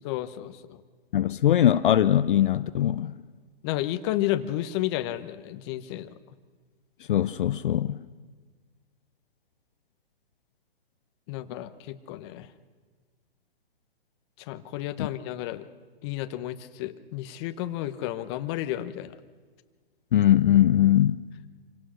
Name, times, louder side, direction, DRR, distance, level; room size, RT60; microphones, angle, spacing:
voice 1, 0.0-0.8 3.6-6.1 11.3-12.5 14.4-15.7 16.0-19.2, left 14 dB, 25° left, 0.9 m, -32 dB
voice 2, 1.1-3.1 7.1-8.0 15.0-15.1 20.1-21.2, left 11 dB, 55° left, 0.7 m, -21 dB
26.5 x 18.0 x 6.4 m
hypercardioid pair, 150°, 31 cm